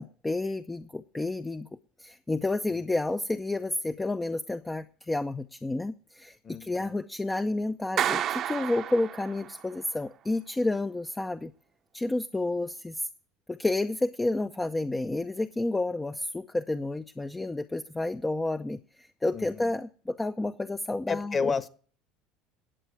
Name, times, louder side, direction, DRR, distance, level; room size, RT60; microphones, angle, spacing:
voice 1, 0.0-1.7 2.0-11.5 11.9-13.1 13.5-21.5, left 2 dB, 15° left, 8 dB, 0.6 m, -30 dB
voice 2, 6.4-7.0 19.3-19.7 21.1-21.7, left 5 dB, 30° left, 14 dB, 1.4 m, -31 dB
Clapping, 8.0-9.6, right 10 dB, 50° right, 0.9 m, -30 dB
10.0 x 8.2 x 9.6 m, 0.43 s
hypercardioid pair, 90°, 0 cm